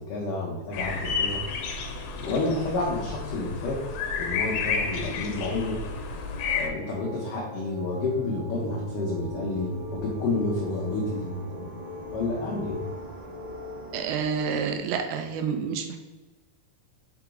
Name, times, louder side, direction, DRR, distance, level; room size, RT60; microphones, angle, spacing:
voice 1, 0.0-1.4 2.2-3.8 4.2-5.8 6.5-11.7 12.1-12.8, left 2 dB, 70° left, -4 dB, 2.1 m, -30 dB
sound 1, 0.7-6.7, left 5 dB, 85° left, 2.9 m, -31 dB
sound 2, 2.2-14.8, equal, 70° right, 1.8 m, -40 dB
voice 2, 13.9-16.0, right 6 dB, 85° right, 6 dB, 2.9 m, -29 dB
7.1 x 4.5 x 3.9 m, 1.2 s
omnidirectional pair, 5.2 m